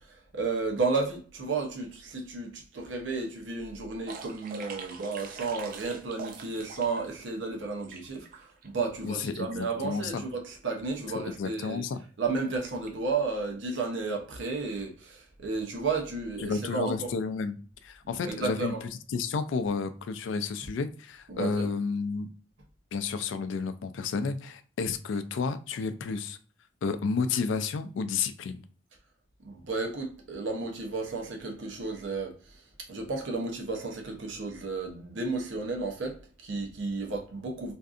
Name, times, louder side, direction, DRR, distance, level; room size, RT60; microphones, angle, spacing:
voice 1, 0.1-11.9 12.2-17.1 18.2-18.8 21.3-21.7 29.4-32.6 32.9-37.7, right 3 dB, 80° right, 0.7 m, -33 dB
sound 1, 4.1-7.1 7.4-8.7 9.2-9.3 9.5-9.8 10.1-10.2 10.9-11.2 11.5-11.7 12.3-12.4 12.9-13.0, right 5 dB, 50° right, 0.3 m, -44 dB
voice 2, 9.0-10.2 11.1-12.0 16.4-18.7 19.1-22.3 22.9-26.4 26.8-28.6, left 5 dB, 80° left, 0.3 m, -31 dB
2.6 x 2.4 x 2.4 m
head